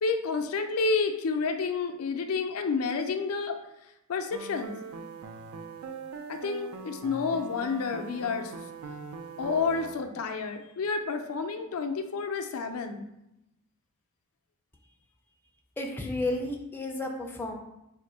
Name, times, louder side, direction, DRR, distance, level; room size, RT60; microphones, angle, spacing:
voice 1, 0.0-3.6 4.1-4.7 6.3-8.5 9.4-13.1, left 4 dB, 80° left, 6 dB, 0.4 m, -30 dB
sound 1, 4.3-10.0, right 5 dB, 85° right, 0.4 m, -41 dB
voice 2, 15.8-17.5, left 2 dB, 10° left, 1 dB, 0.3 m, -32 dB
3.5 x 2.5 x 4.2 m, 0.87 s
head